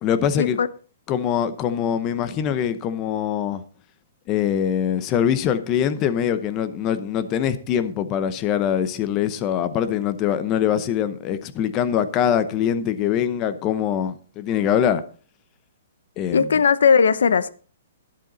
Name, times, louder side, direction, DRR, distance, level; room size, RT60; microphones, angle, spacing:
voice 1, 0.0-0.6 1.1-3.6 4.3-15.0 16.2-16.5, left 9 dB, 20° left, 0.8 m, -23 dB
voice 2, 16.3-17.5, left 6 dB, 85° left, 0.8 m, -18 dB
12.0 x 10.5 x 4.0 m
hypercardioid pair, 170°, 0 cm